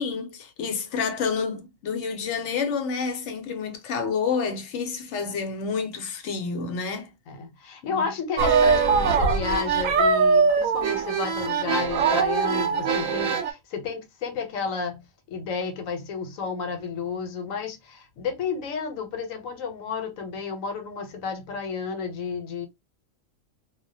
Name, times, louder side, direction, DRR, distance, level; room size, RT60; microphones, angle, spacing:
voice 1, 0.0-7.1 7.8-8.1, left 5 dB, 65° left, 0.9 m, -29 dB
voice 2, 7.3-22.7, left 5 dB, 90° left, 1.1 m, -32 dB
sound 1, 8.4-13.5, right 5 dB, 85° right, 1.0 m, -22 dB
2.3 x 2.1 x 2.6 m
omnidirectional pair, 1.4 m